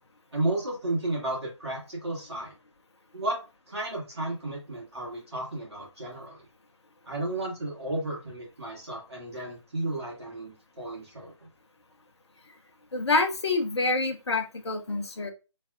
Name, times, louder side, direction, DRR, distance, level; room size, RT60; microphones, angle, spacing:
voice 1, 0.3-2.5 3.1-3.4 3.7-6.4 7.0-11.3, right 2 dB, 55° right, -3 dB, 1.6 m, -33 dB
voice 2, 12.9-15.3, left 3 dB, 55° left, 5 dB, 0.8 m, -27 dB
3.4 x 2.3 x 3.5 m, 0.30 s
figure-of-eight pair, 145°, 16 cm